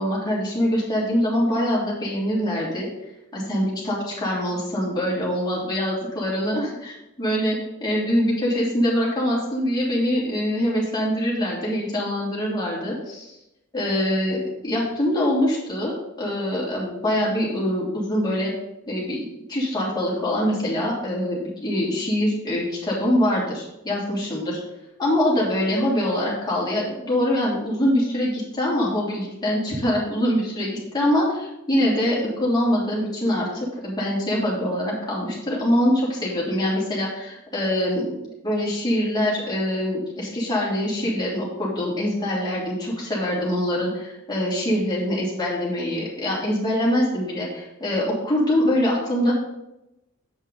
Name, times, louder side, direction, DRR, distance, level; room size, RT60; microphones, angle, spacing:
voice 1, 0.0-2.9 3.3-13.4 13.7-14.4 14.6-15.9 16.2-18.5 18.9-24.6 25.0-49.4, equal, 20° left, -6 dB, 3.1 m, -24 dB
8.3 x 5.4 x 5.4 m, 0.91 s
head